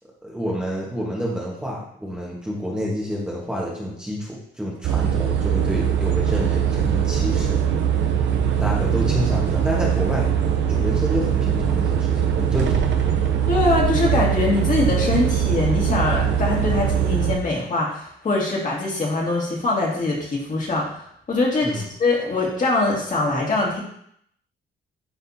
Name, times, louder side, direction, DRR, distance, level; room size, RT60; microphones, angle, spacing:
voice 1, 0.2-7.6 8.6-10.3 10.7-12.9 21.6-21.9, equal, 5° right, -4 dB, 1.3 m, -28 dB
sound 1, 4.8-17.4, right 8 dB, 65° right, 0.7 m, -21 dB
voice 2, 13.5-21.0 21.3-23.8, left 3 dB, 40° left, -3 dB, 2.1 m, -23 dB
9.8 x 3.5 x 2.8 m, 0.70 s
cardioid pair, 90°, 20 cm